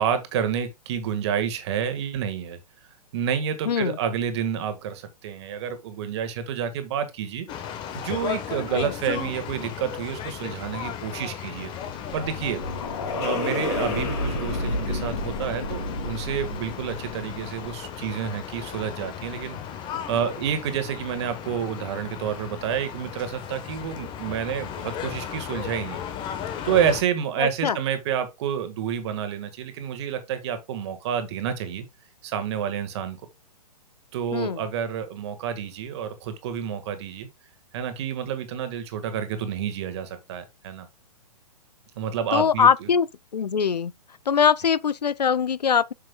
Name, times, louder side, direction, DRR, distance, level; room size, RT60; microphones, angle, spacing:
voice 1, 0.0-2.6 3.1-7.5 7.9-11.7 12.1-12.6 13.1-19.6 20.1-26.0 26.6-31.8 32.2-33.2 34.1-37.3 37.7-40.9 42.0-42.7, right 8 dB, 40° right, 1.5 m, -29 dB
voice 2, 3.7-4.0 8.7-8.9 27.4-27.8 34.3-34.6 42.3-43.1 43.3-43.9 44.3-45.9, left 7 dB, 80° left, 0.5 m, -22 dB
Louisville Downtown, 7.5-27.0, left 9 dB, 20° left, 1.0 m, -36 dB
sound 1, 11.7-18.0, left 2 dB, 45° left, 2.5 m, -31 dB
7.7 x 6.5 x 2.2 m
figure-of-eight pair, 120°, 21 cm